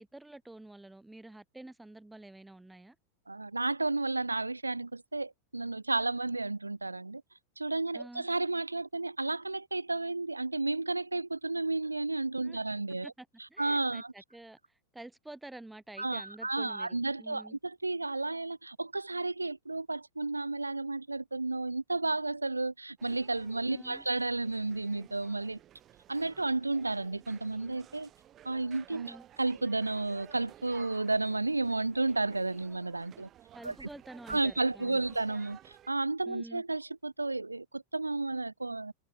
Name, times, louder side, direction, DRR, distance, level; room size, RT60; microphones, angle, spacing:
voice 1, 0.0-3.0 7.9-8.3 12.4-12.6 13.0-17.6 23.7-24.1 28.9-29.3 33.5-35.2 36.3-36.6, right 2 dB, 5° right, 1.8 m, -49 dB
voice 2, 3.3-7.2 7.6-13.1 13.6-14.1 16.0-25.6 26.1-28.1 28.4-33.3 33.6-33.9 34.3-38.9, right 2 dB, 80° right, 0.6 m, -32 dB
sound 1, 23.0-35.9, right 12 dB, 30° right, 4.6 m, -56 dB
figure-of-eight pair, 90°, 0 cm